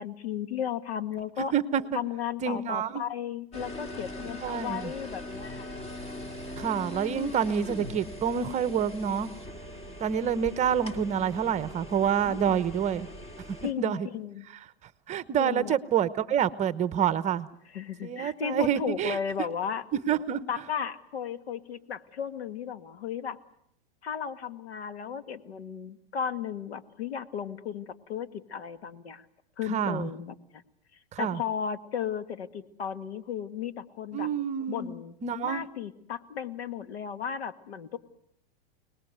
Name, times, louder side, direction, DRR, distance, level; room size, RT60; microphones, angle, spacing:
voice 1, 0.0-1.5 1.9-5.7 12.3-12.5 13.6-14.5 15.4-15.8 17.7-19.8 20.5-23.4 24.0-29.3 29.6-30.6 31.2-34.3 34.7-35.1 35.4-38.0, left 8 dB, 85° left, 10 dB, 2.0 m, -35 dB
voice 2, 1.5-2.0 2.4-3.0 4.4-4.9 6.6-9.3 10.0-13.1 13.5-14.1 15.1-17.5 18.0-19.2 20.1-20.4 29.7-30.1 31.1-31.4 34.1-34.9 35.2-35.6, right 8 dB, 25° right, 15 dB, 1.0 m, -27 dB
sound 1, 3.5-13.7, left 1 dB, 20° left, 2.4 m, -41 dB
29.5 x 19.5 x 8.1 m, 0.75 s
supercardioid pair, 140°, 31 cm